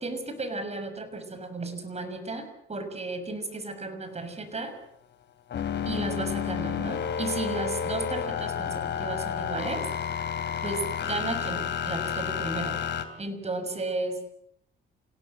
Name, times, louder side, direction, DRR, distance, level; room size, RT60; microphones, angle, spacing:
voice 1, 0.0-4.7 5.8-9.9 10.6-12.8 13.2-14.2, right 3 dB, 30° right, 8 dB, 6.3 m, -34 dB
sound 1, 5.5-13.0, left 8 dB, 65° left, 3.2 m, -31 dB
29.0 x 17.5 x 7.8 m, 0.71 s
cardioid pair, 90°, 20 cm